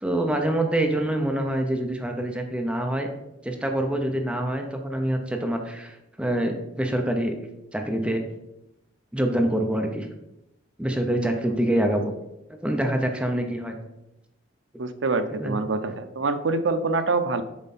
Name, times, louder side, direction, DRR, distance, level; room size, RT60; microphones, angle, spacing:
voice 1, 0.0-3.1 3.4-7.4 7.7-8.2 9.1-10.1 10.8-12.1 12.5-13.8 15.4-15.6, right 1 dB, 5° right, 3 dB, 0.7 m, -25 dB
voice 2, 14.8-17.4, right 3 dB, 80° right, 10 dB, 0.6 m, -25 dB
7.1 x 4.4 x 4.2 m, 0.89 s
head